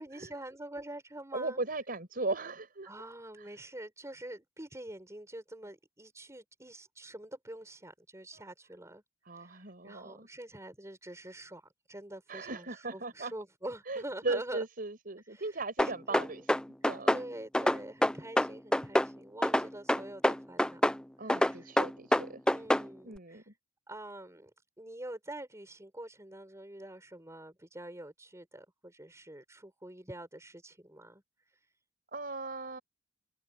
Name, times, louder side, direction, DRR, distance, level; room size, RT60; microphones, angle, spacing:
voice 1, 0.0-1.6 2.8-9.0 9.3-14.7 15.3-16.5 16.8-20.8 21.2-21.7 22.5-23.5 23.9-24.5 24.8-31.2, right 1 dB, 15° right, 5.2 m, -46 dB
voice 2, 1.3-2.9 9.3-10.3 12.3-13.3 13.9-16.5 16.8-17.2 21.2-22.4 23.0-23.5 32.1-32.8, right 2 dB, 50° right, 5.9 m, -37 dB
sound 1, 15.8-17.2 17.5-19.1 19.4-21.0 21.3-22.9, left 1 dB, 5° left, 0.6 m, -26 dB
open air
head